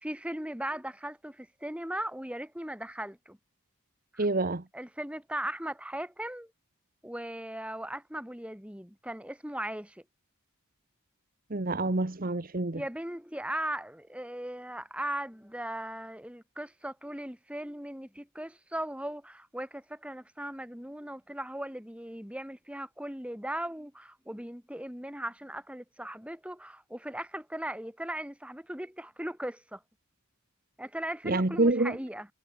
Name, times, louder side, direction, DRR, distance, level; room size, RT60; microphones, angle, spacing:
voice 1, 0.0-3.4 4.1-4.3 4.7-6.5 7.0-10.0 12.7-29.8 30.8-32.3, right 1 dB, 5° right, 4.1 m, -38 dB
voice 2, 4.2-4.6 11.5-12.8 31.2-32.0, right 2 dB, 40° right, 1.1 m, -27 dB
head